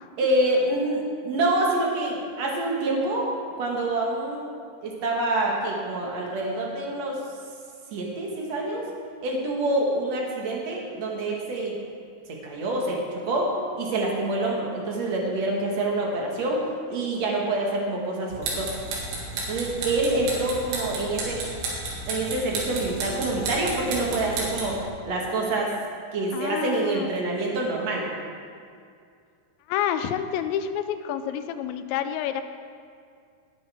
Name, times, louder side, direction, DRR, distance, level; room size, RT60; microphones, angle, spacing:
voice 1, 0.2-3.3 3.6-4.5 4.8-7.2 7.9-8.9 9.2-11.7 12.3-13.5 13.8-18.7 19.5-21.4 22.1-24.8 25.1-25.7 26.1-28.1, right 2 dB, 60° right, -1 dB, 1.8 m, -26 dB
sound 1, 18.3-24.8, right 3 dB, 90° right, 4.5 m, -32 dB
voice 2, 23.2-23.5 26.3-27.1 29.7-32.4, left 9 dB, 85° left, 9 dB, 2.9 m, -29 dB
19.0 x 10.0 x 3.5 m, 2.3 s
omnidirectional pair, 5.2 m